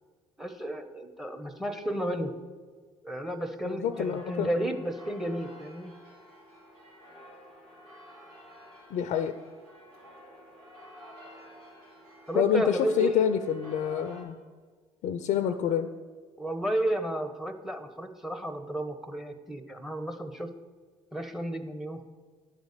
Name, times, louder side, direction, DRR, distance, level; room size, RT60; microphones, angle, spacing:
voice 1, 0.4-2.3 3.0-5.9 12.3-13.3 16.4-20.5 21.1-22.0, right 1 dB, ahead, 9 dB, 1.0 m, -32 dB
voice 2, 3.7-4.5 8.9-9.3 12.3-14.4 15.0-15.9, left 9 dB, 60° left, 9 dB, 0.5 m, -27 dB
sound 1, 3.9-14.2, equal, 80° right, 2.7 m, -51 dB
10.5 x 4.0 x 6.7 m, 1.5 s
hypercardioid pair, 65°, 14 cm